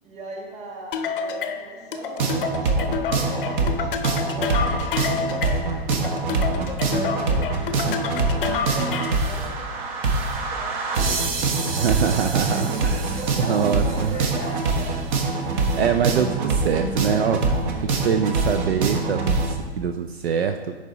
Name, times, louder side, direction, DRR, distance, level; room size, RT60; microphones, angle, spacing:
voice 1, 0.0-6.3 6.8-15.2 17.0-17.4, right 3 dB, 20° right, -1 dB, 1.5 m, -39 dB
sound 1, 0.9-9.3, left 6 dB, 50° left, 0.7 m, -29 dB
sound 2, 2.2-19.5, right 3 dB, 45° right, 0.9 m, -24 dB
voice 2, 11.7-13.2 13.5-14.2 15.5-17.4 17.8-20.8, right 7 dB, 65° right, 7 dB, 0.5 m, -24 dB
10.5 x 4.1 x 3.0 m, 1.3 s
figure-of-eight pair, 115°, 33 cm